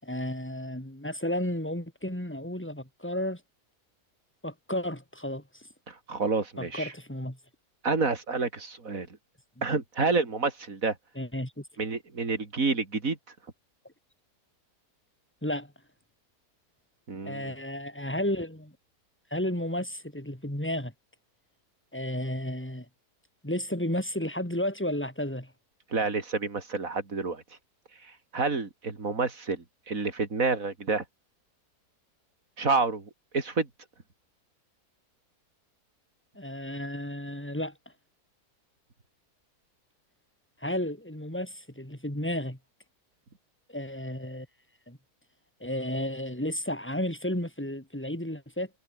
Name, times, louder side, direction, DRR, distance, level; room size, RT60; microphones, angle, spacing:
voice 1, 0.0-3.4 4.4-5.6 6.6-7.4 9.6-9.7 10.0-10.1 11.2-11.6 15.4-15.7 17.3-18.7 19.3-20.9 21.9-22.9 23.4-25.5 36.4-37.7 40.6-42.6 43.7-44.5 44.9-45.0 45.6-48.7, left 1 dB, 5° left, 4.3 m, -32 dB
voice 2, 5.9-6.9 7.8-9.1 9.6-10.9 11.8-13.2 17.1-17.5 25.9-27.4 28.0-31.0 32.6-33.7, right 4 dB, 60° right, 3.6 m, -29 dB
omnidirectional pair, 1.6 m